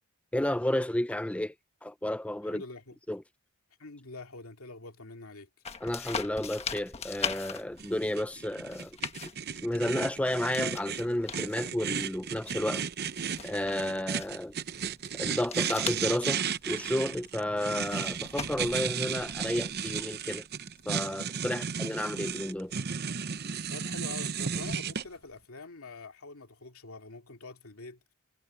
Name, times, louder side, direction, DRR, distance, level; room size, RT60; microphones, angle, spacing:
voice 1, 0.3-1.5 1.8-2.6 3.1-3.2 5.8-9.0 9.6-12.8 13.4-14.5 15.1-20.5 20.9-22.7, left 1 dB, 5° left, 0.4 m, -32 dB
voice 2, 2.4-3.0 3.8-5.5 17.5-17.6 21.6-21.7 23.7-28.0, left 3 dB, 75° left, 2.5 m, -45 dB
sound 1, 5.6-20.0, left 6 dB, 30° left, 1.4 m, -42 dB
sound 2, 7.8-25.0, right 7 dB, 45° right, 0.8 m, -34 dB
head